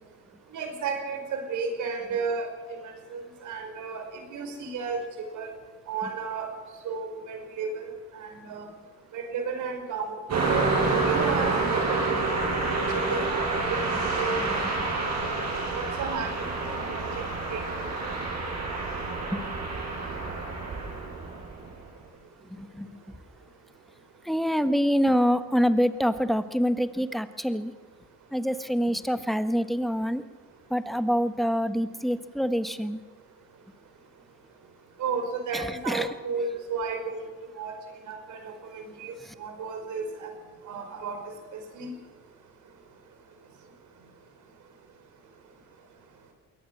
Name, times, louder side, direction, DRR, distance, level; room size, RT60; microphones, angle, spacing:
voice 1, 0.5-5.5 5.9-6.5 6.8-8.7 9.1-10.2 10.5-15.4 15.7-16.5 16.9-17.1 17.5-17.9 35.0-37.3 37.6-37.7 38.1-40.3 40.7-41.9, right 5 dB, 80° right, 5 dB, 5.2 m, -34 dB
Car passing by, 10.3-21.7, right 3 dB, 60° right, 7.5 m, -28 dB
voice 2, 22.5-22.9 24.2-27.7 28.3-30.2 30.7-33.0 35.5-36.1 39.2-39.3, equal, ahead, 10 dB, 1.4 m, -26 dB
22.0 x 18.0 x 7.5 m, 1.4 s
cardioid pair, 90°, 30 cm